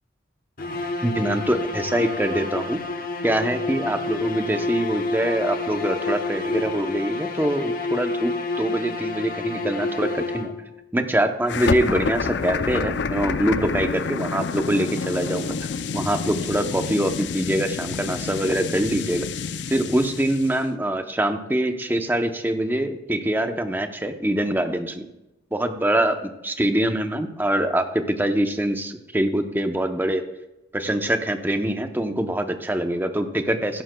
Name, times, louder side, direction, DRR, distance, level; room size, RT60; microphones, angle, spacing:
sound 1, 0.6-10.8, left 3 dB, 50° left, 0.8 m, -29 dB
voice 1, 1.0-2.8 3.2-10.5 10.9-19.3 19.7-25.1 25.5-30.2 30.7-33.8, right 1 dB, 10° right, 6 dB, 0.7 m, -24 dB
sound 2, 11.5-20.6, left 5 dB, 65° left, 0.5 m, -28 dB
15.0 x 11.5 x 2.3 m, 0.94 s
head